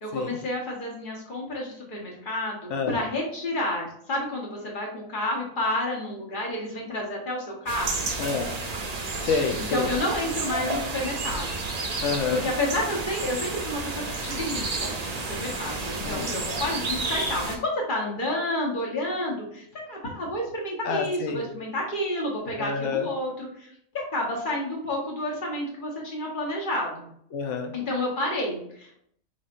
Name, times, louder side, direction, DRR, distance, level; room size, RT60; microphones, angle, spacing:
voice 1, 0.0-8.1 9.7-11.6 12.3-27.1 27.7-28.9, left 1 dB, 40° left, -2 dB, 1.2 m, -30 dB
voice 2, 2.7-3.0 8.2-8.6 9.2-9.9 12.0-12.5 16.0-16.4 20.8-21.5 22.6-23.1 27.3-27.7, left 5 dB, 65° left, 4 dB, 0.9 m, -28 dB
sound 1, 7.7-17.6, right 3 dB, 45° right, 0.5 m, -31 dB
5.2 x 3.5 x 2.5 m, 0.69 s
omnidirectional pair, 1.5 m